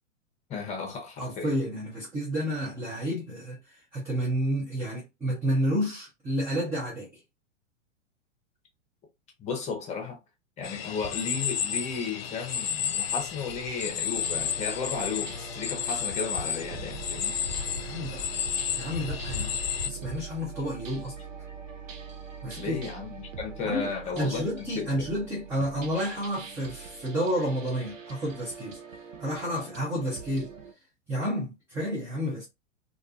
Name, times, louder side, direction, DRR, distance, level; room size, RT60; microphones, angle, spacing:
voice 1, 0.5-1.5 9.4-10.2 10.6-17.4 22.6-25.1, left 5 dB, 20° left, 0.7 m, -34 dB
voice 2, 1.2-7.2 17.3-17.5 17.8-18.2 18.8-19.6 19.8-21.1 22.4-22.8 23.6-30.5 31.1-32.4, equal, 5° right, 0.3 m, -30 dB
sound 1, 10.6-19.9, left 8 dB, 55° left, 0.5 m, -32 dB
sound 2, 14.2-30.7, right 6 dB, 85° right, 0.6 m, -43 dB
2.4 x 2.2 x 2.4 m
hypercardioid pair, 110°, 38 cm